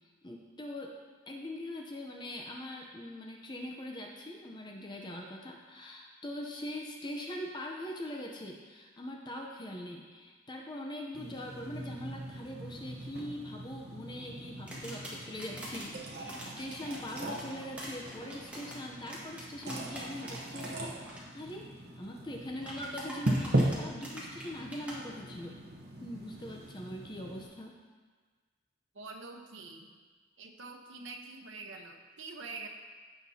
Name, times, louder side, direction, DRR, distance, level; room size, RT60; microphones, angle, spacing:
voice 1, 0.2-1.0 1.3-25.6 26.0-27.7, left 1 dB, 25° left, 0 dB, 0.6 m, -42 dB
sound 1, 11.1-27.5, right 1 dB, 55° right, 1.0 m, -38 dB
sound 2, 14.7-15.9 16.3-20.7 21.0-21.2 22.6-25.0, right 1 dB, 5° right, 1.6 m, -44 dB
voice 2, 28.9-29.9 30.4-32.7, right 3 dB, 90° right, 4 dB, 0.9 m, -45 dB
15.5 x 5.9 x 2.8 m, 1.5 s
head